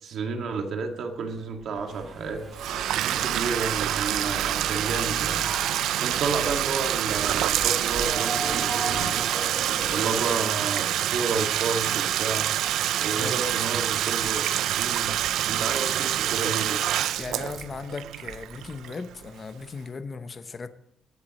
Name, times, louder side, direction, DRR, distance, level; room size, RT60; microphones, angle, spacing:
voice 1, 0.0-2.4 2.9-9.3 9.9-12.5 13.0-14.5 14.7-16.8, right 4 dB, 50° right, 2.1 m, -31 dB
Bird, 0.9-18.8 19.0-19.3, right 1 dB, 20° right, 2.6 m, -48 dB
sound 1, 1.9-10.3, right 3 dB, 35° right, 2.3 m, -37 dB
Bathtub (filling or washing), 2.5-19.3, right 12 dB, 70° right, 0.4 m, -27 dB
voice 2, 13.1-13.4 17.2-20.7, left 4 dB, 25° left, 0.8 m, -37 dB
19.0 x 10.5 x 3.1 m
cardioid pair, 175°, 0 cm